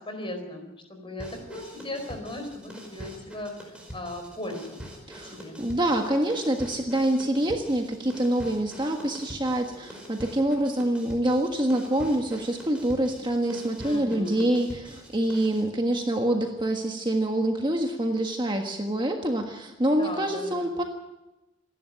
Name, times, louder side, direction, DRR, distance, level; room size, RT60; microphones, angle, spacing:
voice 1, 0.0-4.8 5.2-5.6 13.8-14.5 20.0-20.8, left 1 dB, 25° left, 6 dB, 4.6 m, -37 dB
sound 1, 1.2-15.7, equal, 5° right, 5.3 m, -44 dB
voice 2, 5.1-20.8, right 1 dB, 20° right, 3 dB, 1.5 m, -26 dB
27.5 x 11.5 x 9.2 m, 1.0 s
head